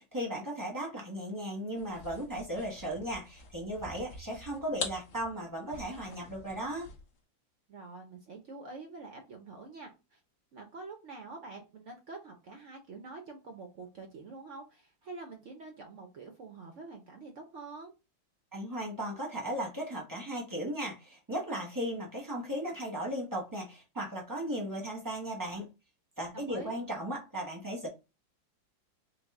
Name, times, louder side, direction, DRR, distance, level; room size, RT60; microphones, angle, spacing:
voice 1, 0.0-6.9 18.5-25.7 26.2-27.9, right 1 dB, 15° right, 0.7 m, -36 dB
sound 1, 1.8-7.2, left 4 dB, 65° left, 1.6 m, -45 dB
voice 2, 7.7-10.2 10.5-17.9 26.3-26.8, right 3 dB, 65° right, 0.7 m, -46 dB
5.1 x 2.1 x 3.6 m
omnidirectional pair, 2.2 m